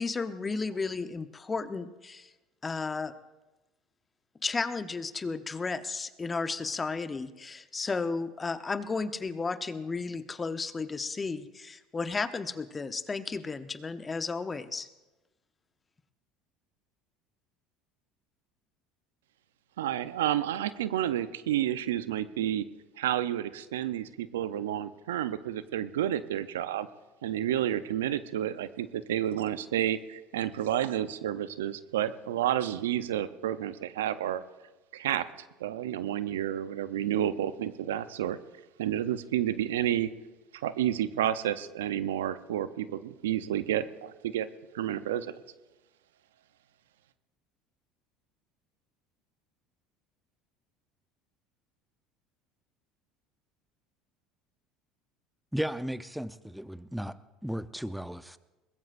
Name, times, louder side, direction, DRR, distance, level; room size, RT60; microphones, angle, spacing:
voice 1, 0.0-2.3 2.6-3.1 4.4-14.9, left 4 dB, 25° left, 11 dB, 0.9 m, -33 dB
voice 2, 19.8-22.7 23.0-26.9 27.2-34.4 34.9-35.3 35.6-38.4 38.8-40.1 40.5-44.5 44.7-45.3, right 11 dB, 85° right, 14 dB, 0.6 m, -30 dB
voice 3, 55.5-57.2 57.4-58.4, equal, ahead, 14 dB, 0.7 m, -35 dB
22.0 x 20.0 x 2.6 m, 1.1 s
hypercardioid pair, 80°, 0 cm